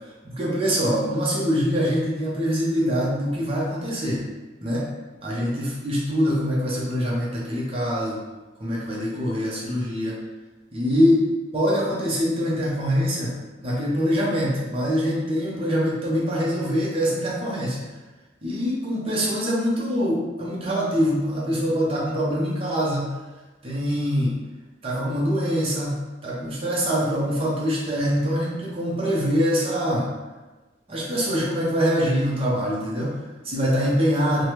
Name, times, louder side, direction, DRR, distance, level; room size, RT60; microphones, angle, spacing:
voice 1, 0.2-4.2 4.6-4.9 5.2-8.2 8.6-10.2 10.7-11.2 11.5-13.3 13.6-17.8 18.4-23.1 23.6-24.3 24.8-30.1 30.9-34.4, equal, 30° right, -6 dB, 0.7 m, -24 dB
3.2 x 2.1 x 3.0 m, 1.2 s
head